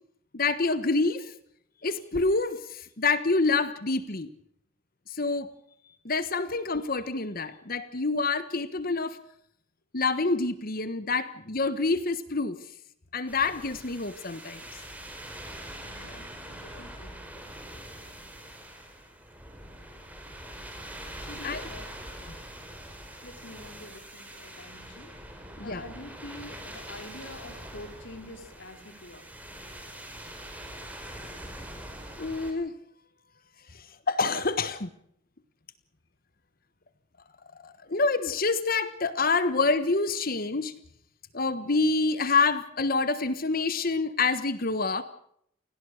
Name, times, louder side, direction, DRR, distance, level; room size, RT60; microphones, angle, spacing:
voice 1, 0.3-1.3 1.8-4.3 5.1-5.5 6.0-9.2 9.9-12.6 13.1-14.6 16.0-16.2 21.4-21.6 25.6-25.8 32.2-32.8 33.7-34.9 37.6-40.7 41.3-45.0, left 3 dB, 45° left, 13 dB, 1.3 m, -27 dB
sound 1, 13.3-32.5, right 1 dB, 10° right, 4.6 m, -43 dB
voice 2, 15.8-17.1 21.2-22.0 23.2-29.2, left 1 dB, 65° left, 6 dB, 3.9 m, -46 dB
28.5 x 18.5 x 6.5 m, 0.68 s
head